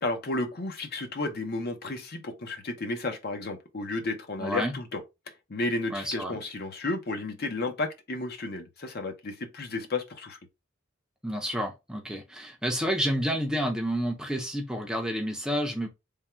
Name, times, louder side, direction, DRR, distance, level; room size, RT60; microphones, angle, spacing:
voice 1, 0.0-5.0 5.5-10.4, left 2 dB, 50° left, 0.8 m, -32 dB
voice 2, 4.4-4.7 5.9-6.4 11.2-15.9, equal, 5° right, 0.6 m, -30 dB
3.6 x 2.3 x 4.3 m
head